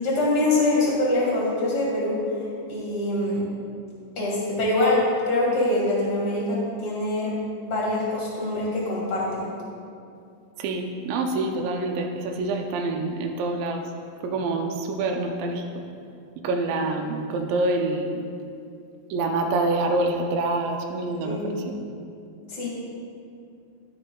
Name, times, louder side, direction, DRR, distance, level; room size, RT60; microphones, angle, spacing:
voice 1, 0.0-2.2 2.7-3.4 4.2-7.3 7.6-9.5 21.2-21.5 22.5-22.7, left 2 dB, 25° left, -5 dB, 1.9 m, -24 dB
voice 2, 10.6-13.8 14.2-15.9 16.4-18.2 19.1-21.6, right 2 dB, 90° right, 3 dB, 2.4 m, -26 dB
13.5 x 5.0 x 3.8 m, 2.5 s
omnidirectional pair, 4.0 m